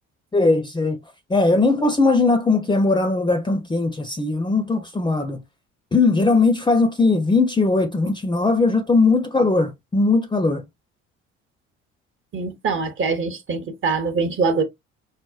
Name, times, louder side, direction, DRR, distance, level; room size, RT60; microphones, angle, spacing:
voice 1, 0.3-1.0 1.3-5.4 5.9-10.6, left 3 dB, 10° left, 0.6 m, -19 dB
voice 2, 12.3-14.6, right 4 dB, 35° right, 0.8 m, -23 dB
4.9 x 2.1 x 2.3 m
figure-of-eight pair, 55°, 37 cm